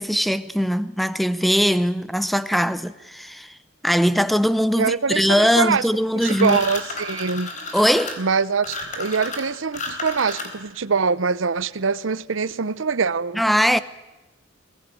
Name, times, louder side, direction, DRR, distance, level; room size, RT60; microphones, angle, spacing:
voice 1, 0.0-3.5 3.8-6.6 7.7-8.2 13.3-13.8, equal, ahead, 0.8 m, -20 dB
voice 2, 4.8-5.8 6.1-7.5 8.2-13.4, right 5 dB, 70° right, 0.8 m, -23 dB
sound 1, 6.2-10.8, left 3 dB, 40° left, 3.9 m, -32 dB
22.0 x 17.5 x 9.0 m
head